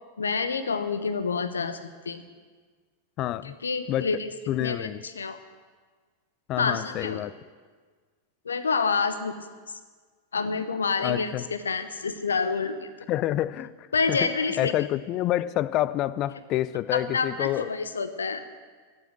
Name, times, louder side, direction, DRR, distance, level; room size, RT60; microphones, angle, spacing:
voice 1, 0.2-2.2 3.4-4.3 4.6-5.4 6.6-7.2 8.4-9.4 10.3-13.1 13.9-14.7 16.9-18.4, left 5 dB, 70° left, 12 dB, 0.9 m, -28 dB
voice 2, 3.2-3.5 3.9-5.0 6.5-7.3 11.0-11.5 13.1-13.7 14.1-14.3 14.6-17.7, left 13 dB, 35° left, 18 dB, 0.4 m, -28 dB
16.5 x 8.2 x 6.3 m, 1.5 s
figure-of-eight pair, 90°, 0 cm